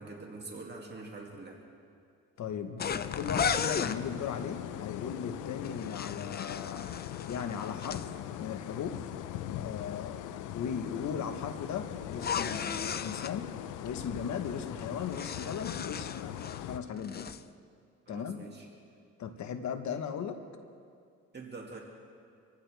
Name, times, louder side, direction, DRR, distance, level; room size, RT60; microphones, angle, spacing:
voice 1, 0.0-1.6 18.1-18.7 21.3-21.8, right 3 dB, 35° right, -2 dB, 2.4 m, -44 dB
voice 2, 2.4-6.9 7.3-8.1 8.4-9.0 9.6-10.2 10.5-13.5 13.8-17.3 18.1-18.5 19.2-20.4, left 7 dB, 70° left, 8 dB, 1.2 m, -37 dB
sound 1, 2.8-4.0 5.6-8.1 12.1-13.3 14.8-16.7 17.0-17.4, left 7 dB, 35° left, 0.5 m, -35 dB
sound 2, 3.0-16.8, left 12 dB, 90° left, 0.6 m, -41 dB
26.0 x 15.5 x 3.4 m, 2.3 s
cardioid pair, 90°, 30 cm